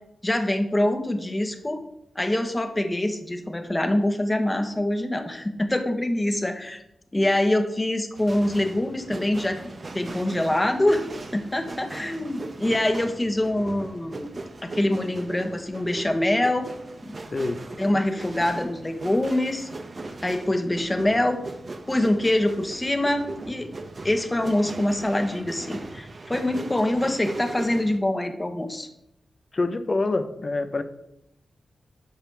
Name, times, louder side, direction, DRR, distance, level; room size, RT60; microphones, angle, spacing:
voice 1, 0.2-1.8 2.1-6.8 7.1-9.6 9.9-11.0 11.3-14.3 14.6-16.7 17.0-17.2 17.8-19.7 20.2-21.4 21.9-23.7 24.0-28.9, left 1 dB, 20° left, 1.2 m, -24 dB
sound 1, 8.2-28.0, right 2 dB, 50° right, 0.9 m, -39 dB
voice 2, 17.3-17.6 29.5-30.8, left 3 dB, 45° left, 0.8 m, -26 dB
10.5 x 5.8 x 3.4 m
cardioid pair, 45°, 0 cm